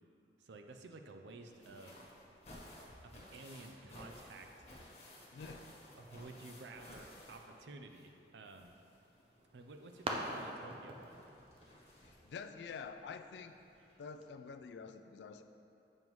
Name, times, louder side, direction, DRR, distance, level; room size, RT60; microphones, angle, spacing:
voice 1, 0.4-2.0 3.0-4.7 6.0-8.7 9.5-11.2, right 3 dB, 80° right, 5 dB, 0.5 m, -52 dB
sound 1, 1.4-8.2 8.4-12.4 13.5-13.6 13.9-14.0, left 1 dB, 35° left, 1.2 m, -57 dB
voice 2, 5.3-5.7 12.0-13.5 14.0-15.4, left 5 dB, 75° left, 8 dB, 0.3 m, -48 dB
sound 2, 9.1-14.2, right 1 dB, 30° right, 0.5 m, -46 dB
7.6 x 5.3 x 3.0 m, 2.9 s
head